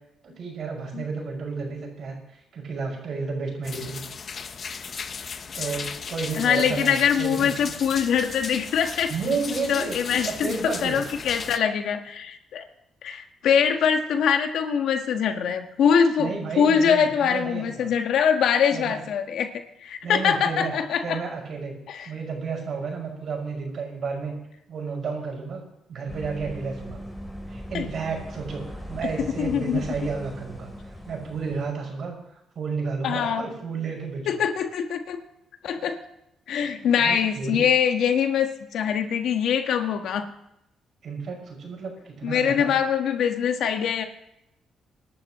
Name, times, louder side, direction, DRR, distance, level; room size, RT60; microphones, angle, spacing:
voice 1, 0.2-4.0 5.5-7.5 9.1-10.0 10.2-11.0 16.2-17.9 18.7-19.0 20.0-20.7 21.0-21.8 22.0-24.3 24.7-25.6 25.9-27.0 27.5-32.1 32.5-34.4 37.0-37.6 41.0-42.8, right 4 dB, 60° right, 0 dB, 6.0 m, -32 dB
sound 1, 3.6-11.6, left 6 dB, 45° left, 0.9 m, -36 dB
voice 2, 6.4-9.1 9.7-12.7 13.0-19.5 19.8-21.2 21.9-22.1 27.7-27.8 29.4-29.8 33.0-33.4 34.3-35.2 35.6-36.0 36.5-40.3 42.2-44.0, left 7 dB, 75° left, 6 dB, 1.5 m, -23 dB
sound 2, 26.1-31.7, equal, 5° left, 3.6 m, -39 dB
25.0 x 11.5 x 3.1 m, 0.85 s
cardioid pair, 90°, 0 cm